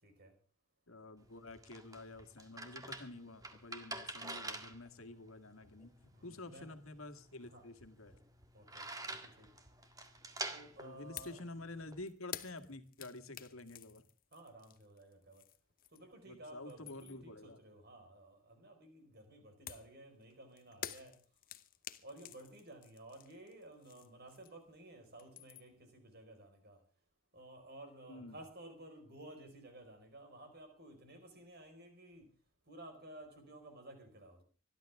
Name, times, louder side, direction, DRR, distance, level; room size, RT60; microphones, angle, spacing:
voice 1, 0.9-8.2 10.8-14.0 16.2-17.6 28.1-28.4, left 2 dB, 75° left, 8 dB, 1.8 m, -49 dB
sound 1, 1.2-12.0, right 2 dB, 15° right, 1.8 m, -48 dB
voice 2, 6.1-6.7 7.5-7.6 8.5-9.5 10.5-11.4 14.3-15.4 15.9-21.1 22.0-26.8 27.3-32.3 32.7-34.4, right 1 dB, 50° right, 6 dB, 5.0 m, -54 dB
sound 2, 11.2-11.4 11.7-16.2 16.5-17.3 19.7-24.8 25.0-25.8, left 10 dB, 40° left, 0.9 m, -50 dB
25.5 x 11.5 x 3.6 m, 0.37 s
head